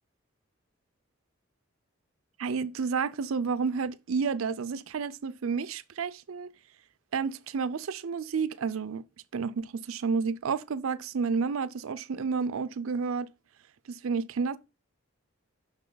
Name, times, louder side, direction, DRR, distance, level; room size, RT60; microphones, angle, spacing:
voice 1, 2.4-6.5 7.1-9.0 9.3-13.3 13.9-14.6, right 5 dB, 90° right, 0.5 m, -30 dB
6.7 x 6.1 x 3.9 m
head